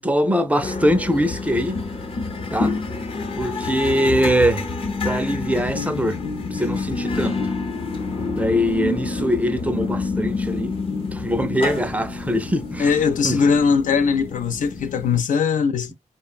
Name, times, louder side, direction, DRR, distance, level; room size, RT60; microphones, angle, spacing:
voice 1, 0.0-1.8 2.5-2.8 3.4-4.7 5.0-6.2 6.5-7.4 8.3-10.8 11.1-12.9 13.2-13.4, equal, 10° right, 0.4 m, -22 dB
sound 1, 0.6-15.2, left 3 dB, 45° left, 0.7 m, -28 dB
voice 2, 12.8-15.9, left 5 dB, 75° left, 0.4 m, -20 dB
3.2 x 2.1 x 2.3 m
wide cardioid pair, 115°, 13 cm